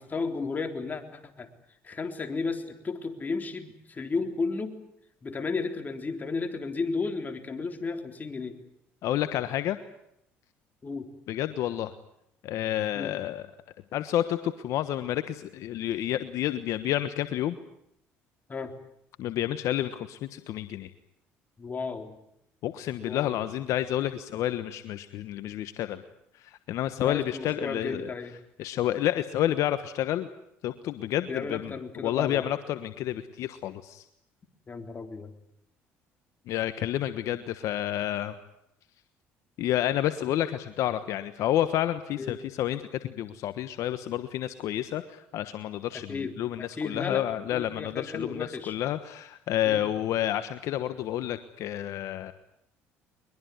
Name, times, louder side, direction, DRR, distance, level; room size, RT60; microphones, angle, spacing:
voice 1, 0.0-1.5 1.8-4.8 5.2-8.6 10.8-11.1 12.9-13.1 18.5-18.7 21.6-22.2 23.0-23.4 27.0-28.4 31.3-32.5 34.7-35.3 42.2-42.4 46.1-47.3 47.5-48.8 49.6-49.9, left 4 dB, 30° left, 6 dB, 3.7 m, -33 dB
voice 2, 9.0-9.8 11.3-11.9 12.4-13.5 13.9-17.6 19.2-20.9 22.6-26.0 26.4-28.1 28.6-30.3 30.6-34.0 36.5-38.3 39.6-52.3, left 12 dB, 70° left, 11 dB, 1.2 m, -30 dB
22.5 x 22.0 x 9.5 m, 0.76 s
supercardioid pair, 80°, 6 cm